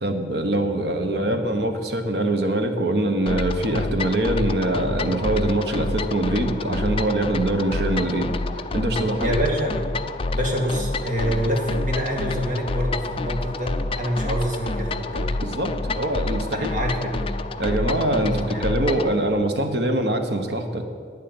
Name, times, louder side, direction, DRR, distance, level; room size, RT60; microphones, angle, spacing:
voice 1, 0.0-8.3 8.7-9.4 15.4-16.7 17.6-20.8, right 1 dB, 65° right, 6 dB, 1.3 m, -23 dB
sound 1, 3.3-19.1, left 2 dB, 30° left, 0.4 m, -28 dB
voice 2, 9.2-9.9 10.3-15.3 16.5-17.1 18.2-18.6, equal, 45° right, 1 dB, 2.2 m, -26 dB
10.5 x 9.5 x 8.0 m, 2.1 s
head